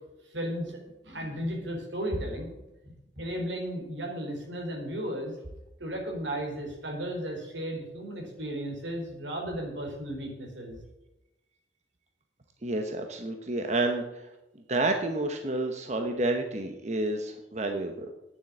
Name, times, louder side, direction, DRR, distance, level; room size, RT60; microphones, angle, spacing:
voice 1, 0.3-0.8 1.0-2.5 2.8-5.3 5.8-10.8, equal, 85° right, 1 dB, 3.9 m, -34 dB
voice 2, 12.6-14.3 14.7-18.1, right 2 dB, 40° right, 4 dB, 1.0 m, -29 dB
9.4 x 7.5 x 8.5 m, 0.97 s
head